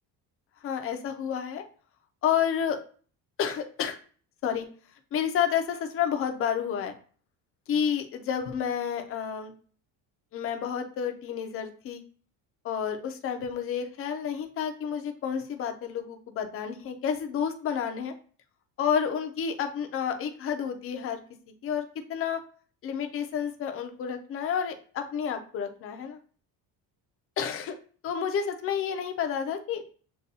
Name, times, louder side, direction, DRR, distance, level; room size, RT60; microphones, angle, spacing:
voice 1, 0.6-1.6 2.2-2.8 3.4-4.0 4.4-4.7 5.1-6.9 7.7-9.5 10.3-12.0 12.6-18.1 18.8-21.2 21.6-21.8 22.1-22.4 22.8-26.2 27.4-27.8 28.0-29.8, left 8 dB, 35° left, 6 dB, 0.4 m, -30 dB
6.6 x 2.2 x 2.7 m, 0.43 s
cardioid pair, 175°, 41 cm